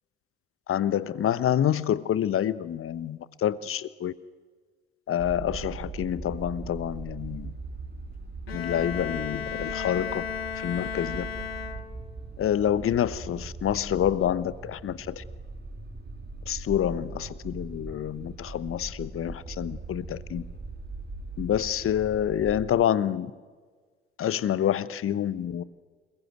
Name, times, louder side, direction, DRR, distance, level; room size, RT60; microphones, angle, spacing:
voice 1, 0.7-4.1 5.1-7.5 8.5-10.2 10.6-11.3 12.4-15.2 16.5-20.4 21.4-23.3 24.2-25.6, left 10 dB, 45° left, 17 dB, 1.1 m, -27 dB
sound 1, 5.2-22.7, right 3 dB, 35° right, 5.4 m, -40 dB
Bowed string instrument, 8.5-12.2, left 7 dB, 90° left, 0.9 m, -34 dB
28.0 x 21.0 x 9.3 m, 1.5 s
figure-of-eight pair, 50°, 29 cm